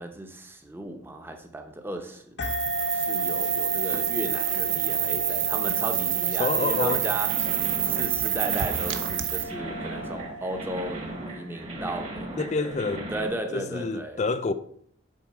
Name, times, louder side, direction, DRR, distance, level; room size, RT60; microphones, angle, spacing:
voice 1, 0.0-2.4 2.9-7.3 7.8-12.8 13.1-14.2, right 1 dB, 10° right, 0.8 m, -35 dB
sound 1, 2.4-11.4, right 1 dB, 60° left, 0.9 m, -34 dB
sound 2, 2.4-9.4, right 13 dB, 70° right, 0.7 m, -27 dB
voice 2, 6.4-7.1 12.4-13.1 13.5-14.5, left 4 dB, 35° left, 0.3 m, -27 dB
sound 3, 6.7-13.3, right 1 dB, 30° right, 1.3 m, -37 dB
7.3 x 4.7 x 4.7 m
head